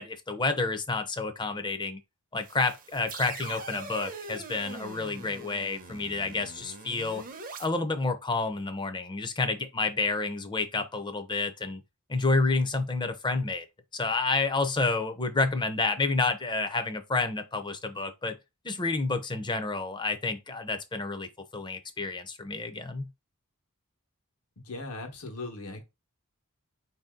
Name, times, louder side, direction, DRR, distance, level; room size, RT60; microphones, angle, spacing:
voice 1, 0.0-2.0 2.3-7.2 7.6-11.8 12.1-13.7 13.9-18.3 18.6-23.0, left 3 dB, 20° left, 0.5 m, -29 dB
sound 1, 2.4-7.7, right 4 dB, 40° right, 0.6 m, -43 dB
voice 2, 24.6-25.8, left 2 dB, 80° left, 1.2 m, -39 dB
4.8 x 2.7 x 3.7 m
head